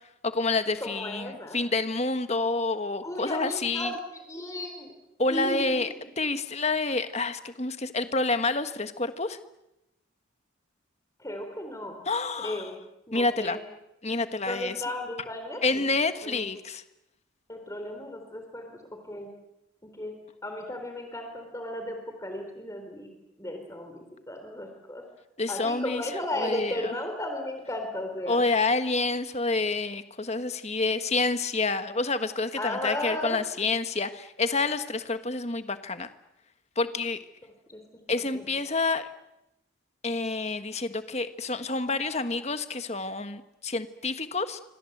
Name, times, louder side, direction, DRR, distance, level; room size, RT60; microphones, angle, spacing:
voice 1, 0.2-4.0 5.2-5.9 6.2-9.4 12.0-12.7 13.1-13.6 14.0-14.7 15.6-16.8 25.4-26.0 26.3-26.9 28.3-36.1 36.8-37.2 38.1-39.1 40.0-44.6, left 3 dB, 30° left, 10 dB, 1.5 m, -28 dB
voice 2, 0.8-1.6 3.0-4.9 5.3-6.0 11.2-12.0 12.4-12.7 13.1-13.6 14.4-15.8 16.2-16.5 17.5-18.8 19.1-19.3 19.8-20.1 20.4-23.1 23.4-25.0 25.5-28.4 32.6-33.4 37.7-37.8 38.3-38.5, left 1 dB, 15° left, 4 dB, 3.8 m, -35 dB
28.0 x 25.5 x 8.0 m, 0.90 s
head